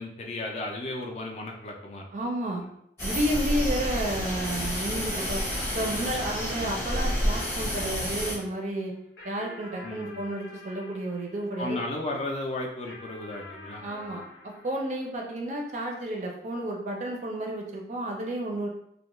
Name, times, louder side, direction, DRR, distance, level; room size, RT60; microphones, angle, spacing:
voice 1, 0.0-2.0 9.8-10.3 11.6-13.8, left 2 dB, 35° left, 0 dB, 0.3 m, -34 dB
voice 2, 2.1-2.6 3.0-5.4 5.7-8.9 9.2-11.8 13.8-18.7, right 1 dB, 40° right, 0 dB, 0.4 m, -31 dB
sound 1, 3.0-8.4, equal, 15° left, 0.7 m, -29 dB
sound 2, 5.5-12.2 12.9-15.7, left 2 dB, 80° left, 0.7 m, -47 dB
2.2 x 2.0 x 2.9 m, 0.72 s
head